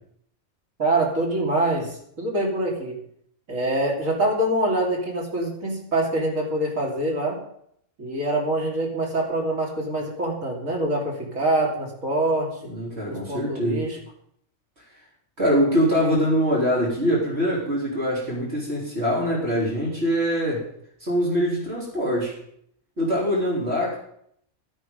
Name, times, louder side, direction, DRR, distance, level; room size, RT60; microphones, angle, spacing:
voice 1, 0.8-3.0 3.5-7.4 8.0-12.5 13.1-14.0, right 1 dB, 65° right, -1 dB, 3.4 m, -25 dB
voice 2, 12.6-13.9 15.4-20.6 21.0-22.3 23.0-24.0, equal, 50° right, -5 dB, 3.8 m, -23 dB
13.0 x 9.3 x 5.3 m, 0.69 s
omnidirectional pair, 1.5 m